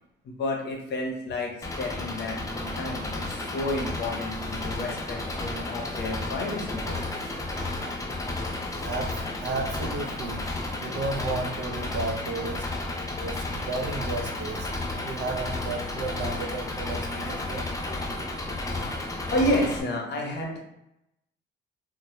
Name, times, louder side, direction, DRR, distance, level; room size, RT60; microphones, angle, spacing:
voice 1, 0.2-7.0 19.3-20.6, left 1 dB, 60° left, 1 dB, 0.7 m, -30 dB
Engine, 1.6-19.8, left 2 dB, 15° left, 0.4 m, -32 dB
voice 2, 8.8-10.5 10.8-12.7 13.2-17.7, right 3 dB, 60° right, 2 dB, 0.5 m, -33 dB
2.1 x 2.0 x 2.9 m, 0.84 s
cardioid pair, 90°, 20 cm